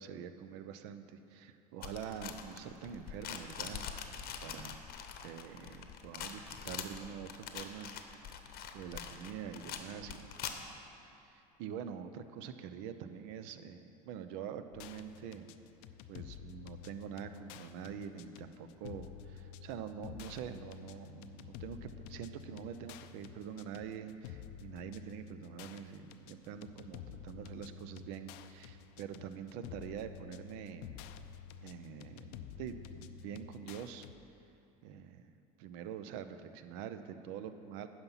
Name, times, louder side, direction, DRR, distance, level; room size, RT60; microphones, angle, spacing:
voice 1, 0.0-4.8 5.2-8.4 8.7-10.2 10.5-10.6 11.2-15.6 16.1-30.9 31.6-34.1 34.8-35.2 35.6-37.9, right 8 dB, 70° right, 10 dB, 0.6 m, -45 dB
sound 1, 1.8-10.8, left 8 dB, 50° left, 0.8 m, -44 dB
sound 2, 14.7-34.2, left 8 dB, 70° left, 0.5 m, -50 dB
9.7 x 5.9 x 5.6 m, 2.7 s
hypercardioid pair, 90°, 20 cm